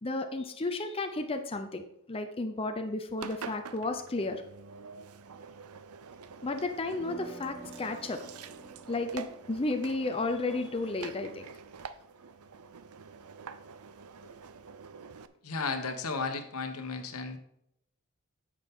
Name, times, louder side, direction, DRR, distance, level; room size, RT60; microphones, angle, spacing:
voice 1, 0.0-4.4 6.4-8.2 8.9-11.4, left 2 dB, 25° left, 6 dB, 0.7 m, -33 dB
Engine, 3.2-15.3, right 6 dB, 85° right, 0.6 m, -47 dB
sound 1, 6.9-12.9, right 1 dB, ahead, 1.4 m, -52 dB
voice 2, 15.4-17.4, left 4 dB, 90° left, 6 dB, 1.3 m, -34 dB
10.0 x 7.5 x 3.7 m, 0.78 s
head